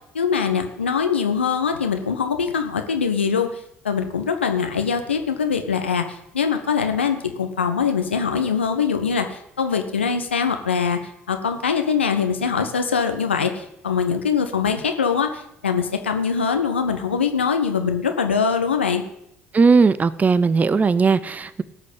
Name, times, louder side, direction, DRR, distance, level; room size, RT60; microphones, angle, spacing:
voice 1, 0.1-3.6 3.8-11.0 11.3-19.0, left 6 dB, 80° left, 6 dB, 1.1 m, -23 dB
voice 2, 19.5-21.6, right 4 dB, 25° right, 17 dB, 0.7 m, -17 dB
18.0 x 6.4 x 7.5 m, 0.76 s
figure-of-eight pair, 55°, 6 cm